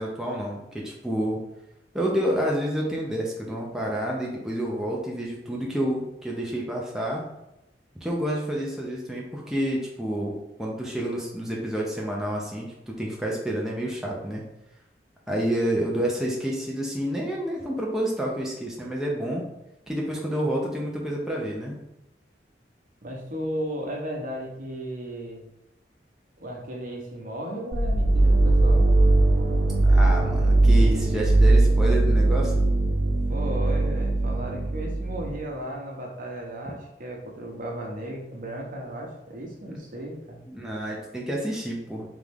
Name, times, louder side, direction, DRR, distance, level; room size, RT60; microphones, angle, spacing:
voice 1, 0.0-1.4 1.9-7.2 8.0-14.4 15.3-19.5 19.9-21.8 29.8-32.7 40.5-42.0, equal, 5° right, -3 dB, 0.6 m, -29 dB
voice 2, 23.0-25.4 26.4-28.9 33.0-40.4, right 1 dB, 50° right, 0 dB, 0.9 m, -35 dB
sound 1, 27.7-35.4, right 2 dB, 85° right, 0.8 m, -20 dB
3.6 x 3.1 x 3.4 m, 0.87 s
head